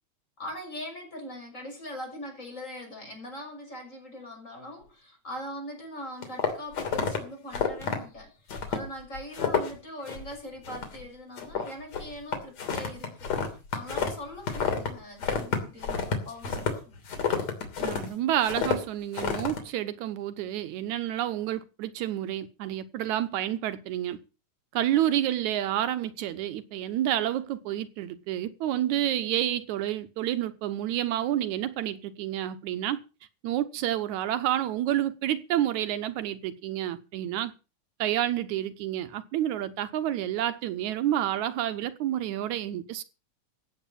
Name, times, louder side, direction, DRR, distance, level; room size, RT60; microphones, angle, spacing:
voice 1, 0.4-8.3 8.7-13.3 13.7-16.9, equal, 25° left, 6.5 m, -41 dB
sound 1, 6.2-7.2 7.5-8.0 8.5-8.9 9.1-9.8 10.1-10.4 10.6-11.1 11.4-14.9 15.2-18.1 18.4-18.8 19.1-19.6, left 6 dB, 65° left, 4.1 m, -29 dB
voice 2, 17.8-24.2 24.7-33.0 33.4-37.5 38.0-43.0, right 12 dB, 85° right, 2.4 m, -29 dB
16.0 x 8.4 x 7.2 m
omnidirectional pair, 3.3 m